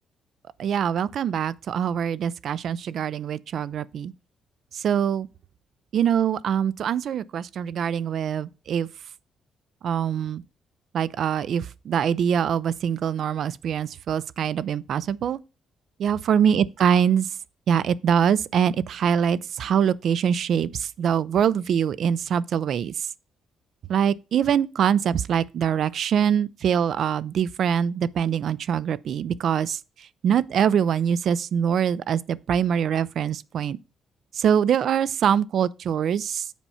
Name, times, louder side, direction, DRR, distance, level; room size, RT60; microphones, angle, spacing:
voice 1, 0.6-4.1 4.7-5.3 5.9-8.9 9.8-10.4 10.9-15.4 16.0-17.3 17.7-22.9 23.9-29.8 30.2-33.8 34.4-36.4, right 8 dB, 65° right, 0.4 m, -23 dB
7.2 x 4.3 x 5.5 m
cardioid pair, 90°, 0 cm